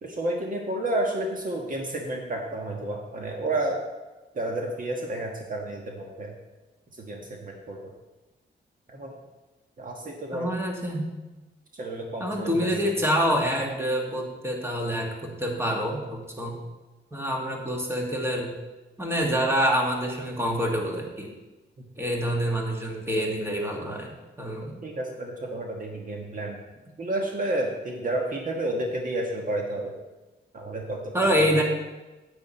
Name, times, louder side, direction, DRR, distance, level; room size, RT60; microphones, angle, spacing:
voice 1, 0.0-3.8 4.3-6.3 6.9-7.8 8.9-9.1 9.8-10.5 11.7-12.7 24.8-26.6 27.0-29.9 30.5-31.6, right 1 dB, 45° right, 1 dB, 1.5 m, -31 dB
voice 2, 10.3-11.1 12.2-16.6 17.1-18.5 19.0-21.3 22.0-24.8 31.1-31.6, equal, 15° right, 0 dB, 2.0 m, -26 dB
9.7 x 8.8 x 4.4 m, 1.1 s
cardioid pair, 100°, 19 cm